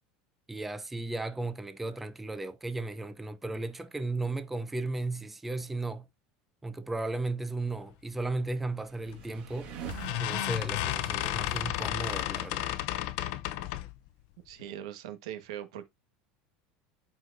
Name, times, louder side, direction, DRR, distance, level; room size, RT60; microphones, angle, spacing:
voice 1, 0.5-6.1 6.6-9.9 10.2-12.7, right 2 dB, 5° right, 0.5 m, -35 dB
sound 1, 8.8-12.4, right 7 dB, 40° right, 1.7 m, -44 dB
sound 2, 9.1-9.4 9.9-14.0, left 15 dB, 55° left, 0.6 m, -32 dB
voice 2, 14.4-15.9, right 11 dB, 85° right, 1.3 m, -40 dB
12.5 x 4.5 x 2.6 m
cardioid pair, 170°, 3 cm